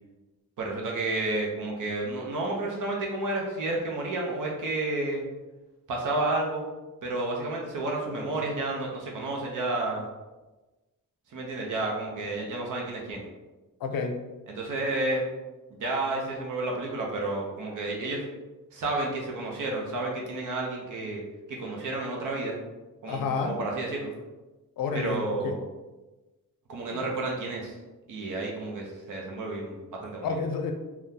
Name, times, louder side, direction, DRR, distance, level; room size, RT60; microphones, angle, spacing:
voice 1, 0.6-5.2 5.9-6.6 7.0-10.0 11.3-13.2 14.5-15.2 15.7-18.3 18.7-21.2 21.5-22.5 23.0-24.1 24.9-25.6 26.7-27.7 28.1-30.4, right 2 dB, 65° right, -1 dB, 0.7 m, -31 dB
voice 2, 13.8-14.1 23.1-23.5 24.8-25.5 26.9-27.0 30.2-30.7, left 5 dB, 75° left, 5 dB, 0.5 m, -30 dB
3.6 x 2.3 x 2.7 m, 1.1 s
wide cardioid pair, 155°, 34 cm